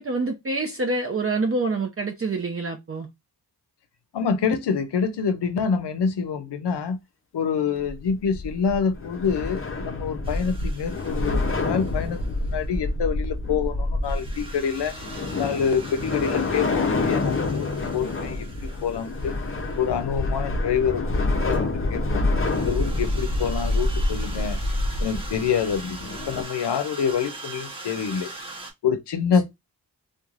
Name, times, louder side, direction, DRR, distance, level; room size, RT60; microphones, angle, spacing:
voice 1, 0.0-3.1, right 3 dB, 35° right, 0.6 m, -26 dB
voice 2, 4.1-7.0 7.3-14.9 15.4-19.3 19.8-22.2 22.6-24.6 25.0-28.3 28.8-29.4, left 6 dB, 80° left, 0.6 m, -26 dB
sound 1, 7.8-26.4, left 2 dB, 35° left, 0.6 m, -27 dB
sound 2, 10.2-12.7 14.0-20.2 21.5-21.6 22.4-28.7, right 2 dB, 15° right, 1.0 m, -42 dB
3.0 x 2.2 x 2.4 m
cardioid pair, 45°, 40 cm